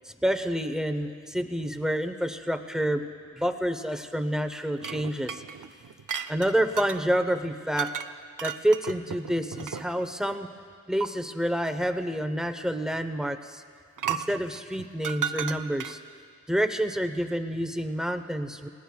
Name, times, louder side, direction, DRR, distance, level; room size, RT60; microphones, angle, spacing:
voice 1, 0.0-3.0 3.4-5.4 6.3-7.9 8.4-10.5 10.9-13.6 14.1-16.0 16.5-18.7, equal, ahead, 7 dB, 0.8 m, -28 dB
sound 1, 4.8-7.0 7.8-8.1 8.4-10.1 11.0-11.1 14.0-16.1, right 8 dB, 80° right, 0.5 m, -34 dB
29.0 x 18.0 x 2.3 m, 2.2 s
wide cardioid pair, 55°, 31 cm